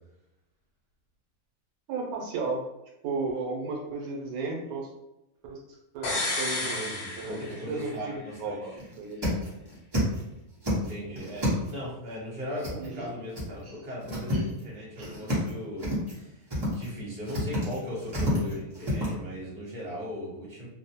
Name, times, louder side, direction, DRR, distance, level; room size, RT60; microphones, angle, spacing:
voice 1, 1.9-2.6 3.0-4.9 5.5-5.6 5.9-6.9 7.2-8.7 9.0-9.2 12.8-13.1 14.3-14.5 15.0-15.1, right 3 dB, 85° right, -2 dB, 1.1 m, -34 dB
sound 1, 6.0-8.0 8.3-8.4, left 2 dB, 75° left, 0.4 m, -31 dB
voice 2, 6.6-8.8 10.7-20.7, left 1 dB, 45° right, -6 dB, 1.2 m, -38 dB
sound 2, 7.1-7.5 7.9-8.0 8.4-8.5 8.8-10.2 10.5-11.9 12.6-13.1 13.3-13.4 13.8-14.6 14.9-15.5 15.8-16.2 16.5-16.9 17.2-19.1, equal, 25° right, 0.6 m, -30 dB
2.6 x 2.1 x 2.7 m, 0.90 s
omnidirectional pair, 1.5 m